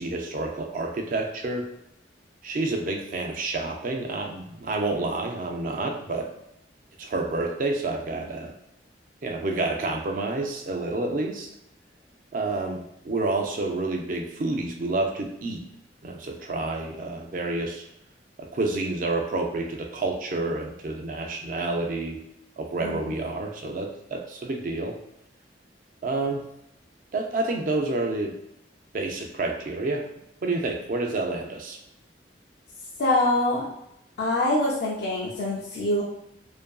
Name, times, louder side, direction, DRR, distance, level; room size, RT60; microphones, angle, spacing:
voice 1, 0.0-1.7 2.4-6.3 7.0-8.5 9.2-11.5 12.3-15.6 16.0-17.8 18.4-22.2 22.6-25.0 26.0-26.4 27.1-28.3 28.9-30.1 30.4-31.8, right 2 dB, 45° right, 3 dB, 0.4 m, -29 dB
voice 2, 33.0-33.7 34.2-36.0, left 1 dB, 60° left, -5 dB, 0.4 m, -24 dB
2.6 x 2.5 x 2.2 m, 0.82 s
head